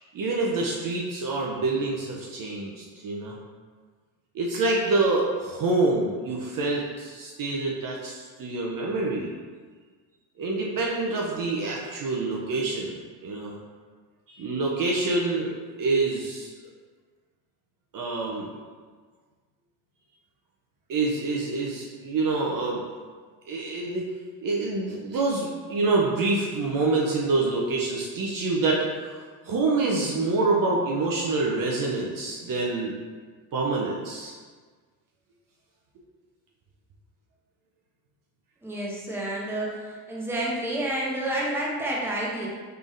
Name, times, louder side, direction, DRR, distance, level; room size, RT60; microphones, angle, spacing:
voice 1, 0.1-3.4 4.3-9.3 10.4-12.9 13.2-13.5 14.3-16.5 17.9-18.5 20.9-22.8 23.5-24.1 24.4-29.2 29.4-33.0 33.5-34.4, right 3 dB, 45° right, -2 dB, 0.6 m, -26 dB
voice 2, 38.6-42.5, right 1 dB, 5° right, -5 dB, 0.8 m, -29 dB
3.5 x 3.3 x 2.6 m, 1.5 s
supercardioid pair, 80°, 48 cm